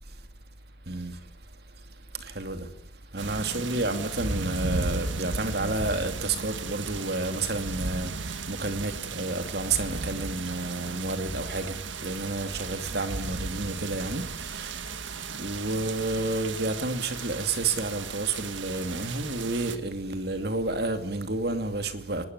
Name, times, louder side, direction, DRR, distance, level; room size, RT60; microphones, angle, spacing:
voice 1, 0.8-1.3 1.8-1.9 2.1-2.7 3.1-15.0 15.4-22.2, right 2 dB, 55° right, 2.8 m, -30 dB
sound 1, 3.2-19.8, right 3 dB, 80° right, 1.9 m, -35 dB
23.0 x 20.5 x 9.7 m
head